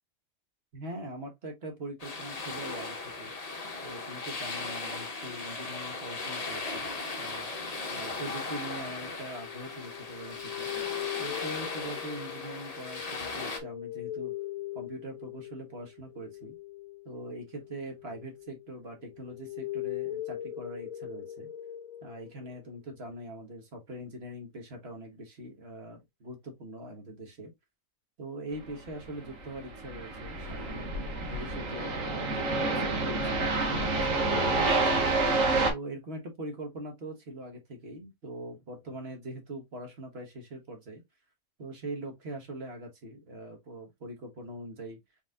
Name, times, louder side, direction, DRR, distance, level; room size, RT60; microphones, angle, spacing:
voice 1, 0.7-3.3 3.8-6.9 7.2-7.5 7.9-10.7 11.2-14.3 14.7-16.5 17.0-21.5 22.0-27.5 28.2-30.9 31.3-35.0 35.6-41.0 41.6-45.0, right 1 dB, 50° right, 1.6 m, -42 dB
sound 1, 2.0-13.6, left 3 dB, 35° left, 0.9 m, -37 dB
sound 2, 9.3-18.7 19.0-22.8, left 13 dB, 75° left, 1.2 m, -40 dB
sound 3, 29.1-35.7, right 3 dB, 70° right, 1.7 m, -28 dB
4.6 x 4.1 x 2.4 m
omnidirectional pair, 1.4 m